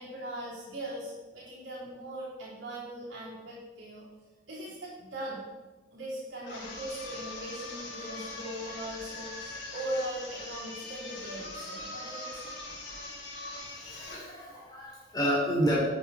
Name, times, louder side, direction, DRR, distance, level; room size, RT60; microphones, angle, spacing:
voice 1, 0.0-4.0 4.5-5.4 5.9-12.5, right 1 dB, 85° right, -11 dB, 4.1 m, -39 dB
sound 1, 6.4-14.3, left 2 dB, 85° left, 3.8 m, -42 dB
voice 2, 13.9-15.8, equal, 20° left, -4 dB, 3.4 m, -29 dB
12.0 x 8.1 x 4.3 m, 1.2 s
head